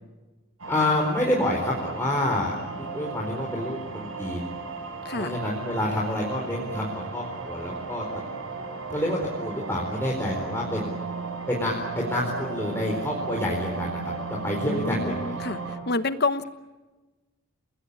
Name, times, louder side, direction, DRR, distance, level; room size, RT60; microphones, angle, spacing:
sound 1, 0.6-15.8, right 4 dB, 70° right, 5.5 m, -35 dB
voice 1, 0.7-4.4 5.2-8.0 8.9-10.9 11.5-15.4, left 1 dB, 10° left, -2 dB, 4.4 m, -28 dB
voice 2, 5.0-5.4 14.6-16.4, left 3 dB, 50° left, 12 dB, 1.2 m, -28 dB
29.5 x 20.0 x 8.6 m, 1.2 s
head